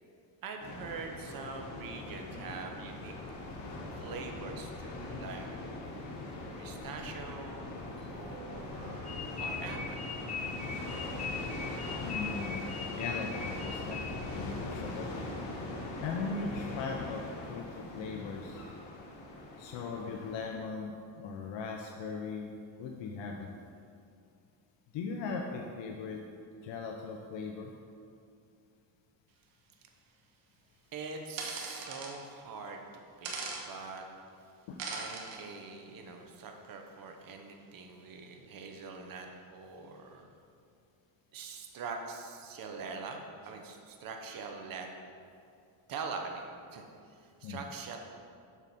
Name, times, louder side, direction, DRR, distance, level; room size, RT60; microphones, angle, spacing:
voice 1, 0.4-3.1 4.0-5.5 6.6-10.0 30.9-32.8 33.2-34.0 34.9-40.3 41.3-44.9 45.9-48.0, right 4 dB, 45° right, 3 dB, 0.9 m, -43 dB
sound 1, 0.6-20.5, left 2 dB, 90° left, 1.7 m, -41 dB
sound 2, 9.1-14.4, left 5 dB, 15° left, 0.4 m, -40 dB
voice 2, 12.0-12.6 12.9-14.0 14.3-15.2 16.0-17.2 17.5-17.7 17.9-18.6 19.6-22.5 22.8-23.6 24.9-26.2 26.6-27.7 34.7-34.8 47.4-47.6, left 4 dB, 65° left, 2 dB, 0.8 m, -38 dB
sound 3, 31.4-32.1 33.2-33.6 34.8-35.4, right 4 dB, 90° right, 1.4 m, -39 dB
7.2 x 6.3 x 4.2 m, 2.4 s
cardioid pair, 125°, 48 cm